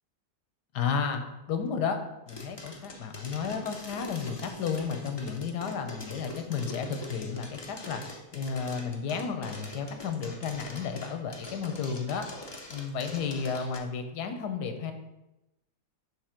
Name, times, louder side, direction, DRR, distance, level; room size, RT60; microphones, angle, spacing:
voice 1, 0.7-1.2 1.5-2.0 2.3-12.3 12.7-14.9, left 6 dB, 85° left, 7 dB, 1.4 m, -32 dB
sound 1, 2.3-13.8, left 2 dB, 40° left, 0.3 m, -44 dB
6.6 x 3.9 x 5.8 m, 0.95 s
omnidirectional pair, 1.7 m